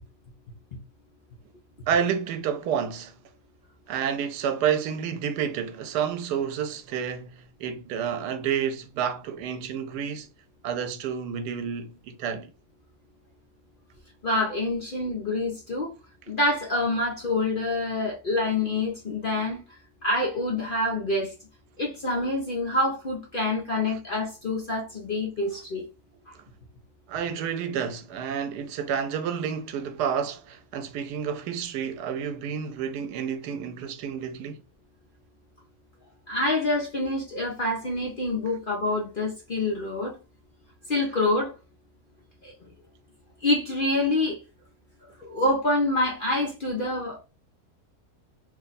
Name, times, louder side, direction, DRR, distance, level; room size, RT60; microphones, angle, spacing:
voice 1, 1.9-3.1 3.9-10.3 10.6-12.5 27.1-34.6, right 7 dB, 85° right, 1.1 m, -29 dB
voice 2, 14.2-15.9 16.3-19.6 20.0-21.3 21.8-25.8 36.3-40.2 40.9-41.5 42.4-42.5 43.4-44.4 45.2-47.2, left 2 dB, 50° left, 0.7 m, -26 dB
3.1 x 2.2 x 3.9 m
omnidirectional pair, 1.7 m